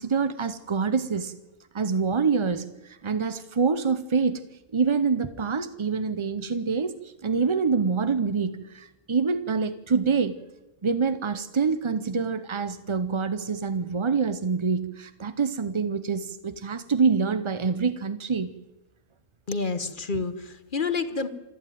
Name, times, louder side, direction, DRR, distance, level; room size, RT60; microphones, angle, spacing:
voice 1, 0.0-1.4 1.7-4.4 4.7-6.9 7.2-10.4 10.8-18.6, right 5 dB, 45° right, 0.4 m, -26 dB
voice 2, 19.5-21.3, left 4 dB, 40° left, 1.1 m, -29 dB
27.0 x 10.5 x 9.2 m
omnidirectional pair, 1.6 m